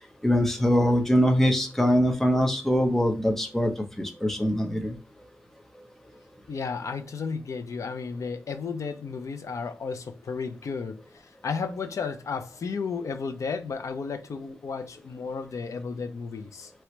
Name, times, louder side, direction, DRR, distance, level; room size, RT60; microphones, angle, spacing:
voice 1, 0.2-3.7 4.0-4.9, equal, 5° left, 0.7 m, -23 dB
voice 2, 6.5-16.7, left 5 dB, 75° left, 0.5 m, -33 dB
4.5 x 3.0 x 3.1 m
wide cardioid pair, 140°, 5 cm